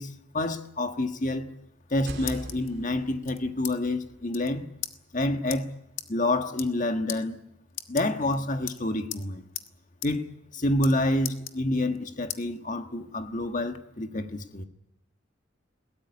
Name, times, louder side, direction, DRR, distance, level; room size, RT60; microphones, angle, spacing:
voice 1, 0.0-1.5 1.9-4.6 5.1-5.7 6.1-7.4 7.9-9.4 10.0-14.6, left 1 dB, 40° left, 7 dB, 1.6 m, -28 dB
sound 1, 1.7-2.7 3.2-3.7 4.0-4.1 4.3-4.5 4.8-4.9 5.5-5.6 6.0-6.1 6.5-6.8 7.1-7.2 7.7-8.3 8.7-9.2 9.5-9.7 10.0-10.1 10.4-10.9 11.2-12.0 12.3-12.4 12.9-13.8, left 12 dB, 75° left, 1.4 m, -37 dB
sound 2, 1.9-5.7, right 1 dB, 55° right, 2.5 m, -44 dB
21.0 x 18.0 x 9.8 m, 0.86 s
head